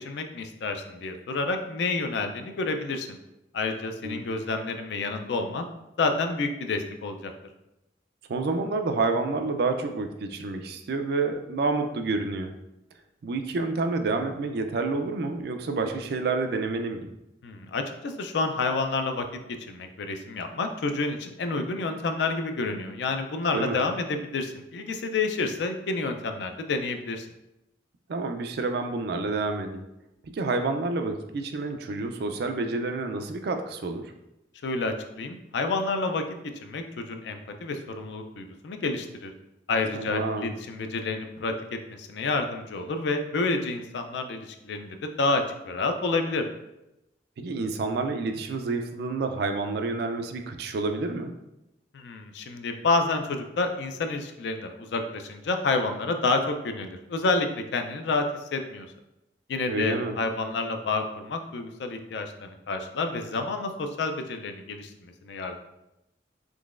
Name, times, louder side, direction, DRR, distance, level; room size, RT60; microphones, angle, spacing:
voice 1, 0.0-3.2 3.5-5.7 6.0-7.3 17.4-19.3 19.7-27.3 34.6-36.2 36.6-39.3 39.7-46.4 51.9-58.3 58.5-58.9 59.5-65.6, left 3 dB, 65° left, 6 dB, 0.4 m, -29 dB
voice 2, 8.3-12.5 13.2-17.1 23.5-23.8 28.1-29.9 30.3-34.1 39.9-40.5 47.4-51.3 59.7-60.2, right 3 dB, 60° right, 6 dB, 0.3 m, -29 dB
3.8 x 3.1 x 2.4 m, 0.90 s
head